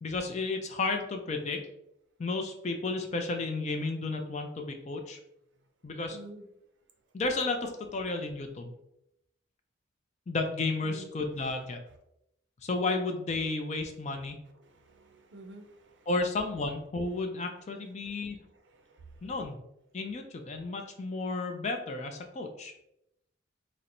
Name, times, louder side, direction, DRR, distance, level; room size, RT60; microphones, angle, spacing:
voice 1, 0.0-1.6 2.2-5.2 5.8-6.2 7.1-8.7 10.3-11.8 12.6-14.4 16.1-18.4 19.2-19.6 19.9-22.7, left 3 dB, 35° left, 4 dB, 0.3 m, -32 dB
voice 2, 6.1-6.4 10.8-11.1 14.8-16.1 18.9-19.0, right 2 dB, 60° right, 5 dB, 0.5 m, -49 dB
4.3 x 2.0 x 2.5 m, 0.81 s
head